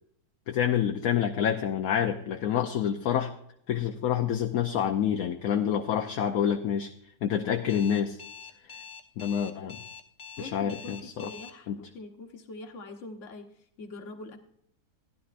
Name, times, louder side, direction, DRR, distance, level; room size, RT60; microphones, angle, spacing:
voice 1, 0.5-3.3 3.7-6.9 7.2-8.2 8.7-8.8 9.2-9.8 10.4-11.3 11.7-11.8, left 9 dB, 70° left, 4 dB, 1.1 m, -27 dB
Alarm, 7.7-11.5, left 7 dB, 30° left, 0.6 m, -45 dB
voice 2, 10.4-14.4, left 2 dB, 55° left, 5 dB, 1.5 m, -43 dB
15.5 x 11.0 x 2.5 m, 0.70 s
omnidirectional pair, 1.7 m